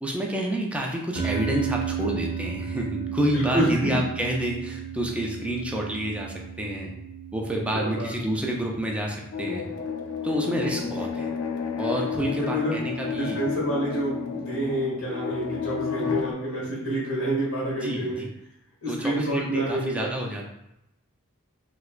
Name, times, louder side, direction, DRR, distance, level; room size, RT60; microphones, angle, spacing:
voice 1, 0.0-6.9 7.3-9.7 10.2-11.3 11.8-13.4 17.8-18.3 18.9-20.5, right 1 dB, 5° right, -1 dB, 0.4 m, -29 dB
sound 1, 1.2-11.6, right 8 dB, 70° right, 0.5 m, -35 dB
voice 2, 3.2-4.0 7.7-8.1 12.3-12.8 13.0-18.2 18.8-20.1, right 1 dB, 90° left, -6 dB, 1.3 m, -28 dB
sound 2, 9.3-16.3, left 7 dB, 70° left, 0.4 m, -31 dB
3.4 x 3.1 x 2.4 m, 0.85 s
head